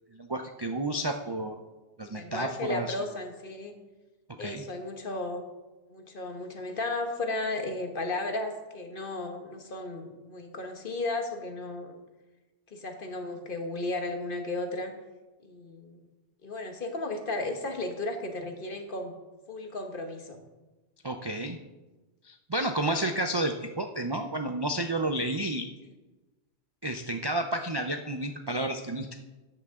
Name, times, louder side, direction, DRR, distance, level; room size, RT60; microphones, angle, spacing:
voice 1, 0.1-1.6 2.0-3.0 4.4-4.6 21.0-21.6 22.2-25.7 26.8-29.1, right 1 dB, 35° right, 5 dB, 0.4 m, -31 dB
voice 2, 2.1-3.7 4.4-5.4 5.9-11.9 12.7-14.9 15.4-16.0 16.4-19.1 19.5-20.4, left 2 dB, 45° left, 5 dB, 1.3 m, -34 dB
13.0 x 8.7 x 3.7 m, 1.1 s
omnidirectional pair, 1.3 m